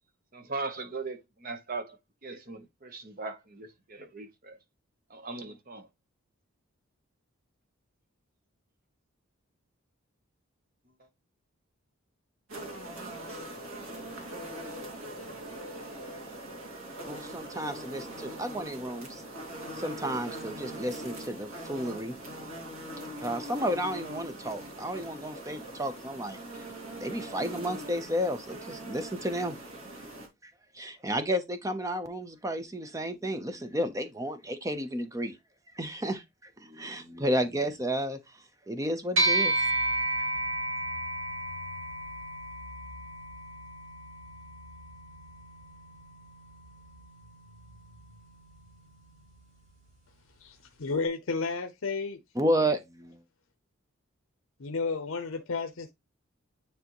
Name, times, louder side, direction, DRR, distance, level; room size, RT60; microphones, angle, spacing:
voice 1, 0.3-2.0 2.2-4.6 5.1-5.9, right 3 dB, 40° right, 0.9 m, -39 dB
sound 1, 12.5-30.3, right 1 dB, 80° right, 2.2 m, -42 dB
voice 2, 17.1-19.2 19.7-22.1 23.2-26.4 27.0-29.6 30.4-35.3 35.8-38.2 38.7-39.5 52.3-53.2, equal, 15° right, 0.7 m, -32 dB
sound 2, 39.2-48.8, right 2 dB, 65° right, 2.3 m, -33 dB
voice 3, 50.4-52.2 54.6-55.9, left 4 dB, 70° left, 0.7 m, -32 dB
9.4 x 3.4 x 3.0 m
head